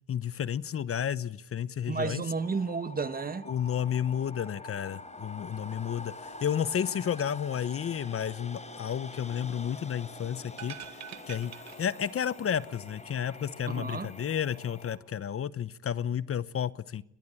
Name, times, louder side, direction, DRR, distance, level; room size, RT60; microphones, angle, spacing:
voice 1, 0.1-2.2 3.5-10.7 11.3-11.5 11.8-17.0, left 9 dB, 50° left, 1.0 m, -32 dB
voice 2, 1.9-3.5 13.7-14.1, right 5 dB, 30° right, 1.5 m, -32 dB
sound 1, 2.4-15.0, left 2 dB, 20° left, 4.3 m, -46 dB
sound 2, 10.5-12.5 12.7-12.8, right 9 dB, 65° right, 1.8 m, -45 dB
22.5 x 20.5 x 8.8 m
cardioid pair, 90°, 30 cm